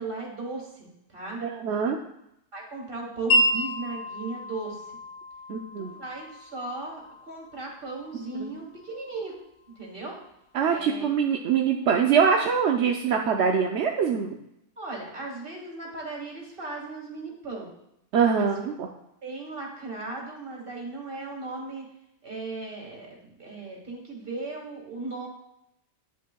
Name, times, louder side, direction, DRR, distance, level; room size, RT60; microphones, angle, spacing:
voice 1, 0.0-1.4 2.5-4.9 5.8-9.4 9.8-10.2 10.7-11.1 13.5-13.6 14.8-17.7 18.4-18.7 19.2-21.9 22.2-25.3, right 3 dB, 35° right, -1 dB, 2.2 m, -37 dB
voice 2, 1.4-2.0 5.5-5.9 8.4-8.5 10.5-14.4 18.1-18.9, right 6 dB, 60° right, 2 dB, 0.8 m, -24 dB
Wind chime, 3.3-9.4, equal, 80° left, 1.9 m, -31 dB
9.9 x 9.3 x 2.3 m, 0.79 s
omnidirectional pair, 1.6 m